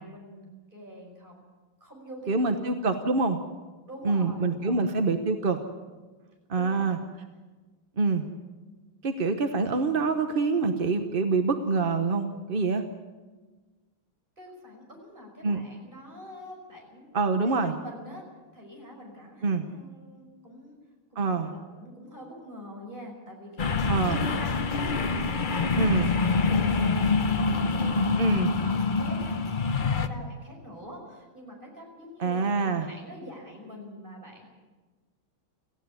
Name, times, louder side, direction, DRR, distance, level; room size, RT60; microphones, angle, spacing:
voice 1, 0.0-1.4 1.8-2.7 3.9-4.9 6.5-7.0 14.4-18.2 18.5-20.8 21.1-34.5, equal, 25° right, 0 dB, 5.7 m, -45 dB
voice 2, 2.3-3.4 4.0-5.6 6.5-7.0 8.0-8.2 9.0-12.8 15.4-15.6 17.1-17.7 19.4-19.6 21.2-21.5 23.9-24.2 25.8-26.1 28.2-28.5 32.2-32.9, right 4 dB, 40° right, 6 dB, 0.8 m, -25 dB
sound 1, 23.6-30.1, left 4 dB, 85° left, 0.4 m, -25 dB
17.5 x 15.5 x 9.6 m, 1.3 s
omnidirectional pair, 2.3 m